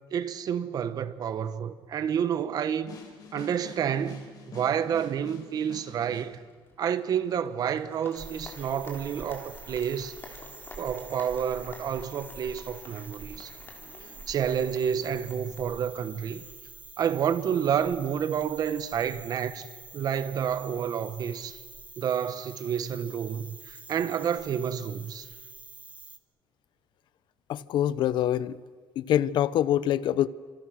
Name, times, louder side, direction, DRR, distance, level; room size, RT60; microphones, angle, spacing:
voice 1, 0.1-3.0 3.3-6.4 6.8-10.2 10.8-13.5 14.3-16.4 17.0-19.7 19.9-21.6 22.0-25.3, right 8 dB, 45° right, 1.2 m, -29 dB
sound 1, 2.9-6.3, left 5 dB, 45° left, 4.6 m, -47 dB
Applause, 6.3-16.4, left 3 dB, 25° left, 3.2 m, -51 dB
sound 2, 8.1-26.2, right 3 dB, 15° right, 1.1 m, -47 dB
voice 2, 27.5-28.6 29.0-30.3, left 11 dB, 60° left, 0.7 m, -25 dB
28.0 x 27.0 x 6.4 m
cardioid pair, 160°, 9 cm